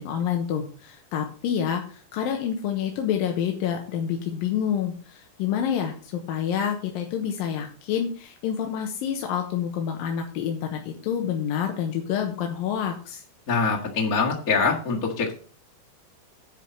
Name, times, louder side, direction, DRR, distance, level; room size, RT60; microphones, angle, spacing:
voice 1, 0.0-13.2, left 8 dB, 85° left, 3 dB, 2.9 m, -28 dB
voice 2, 13.5-15.3, left 4 dB, 35° left, -2 dB, 1.7 m, -24 dB
10.5 x 4.7 x 7.4 m, 0.41 s
omnidirectional pair, 3.9 m